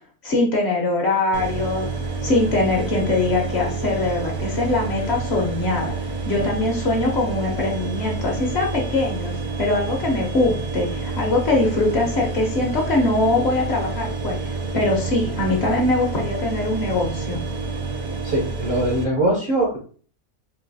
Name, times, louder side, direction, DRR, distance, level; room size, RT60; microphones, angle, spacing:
voice 1, 0.2-1.9 2.2-5.9 6.2-17.4, left 2 dB, 55° left, 0 dB, 0.9 m, -22 dB
sound 1, 1.3-19.0, right 4 dB, 70° right, 1.1 m, -28 dB
voice 2, 18.2-19.8, right 1 dB, 50° right, -2 dB, 0.7 m, -22 dB
3.8 x 2.7 x 2.6 m, 0.43 s
omnidirectional pair, 1.5 m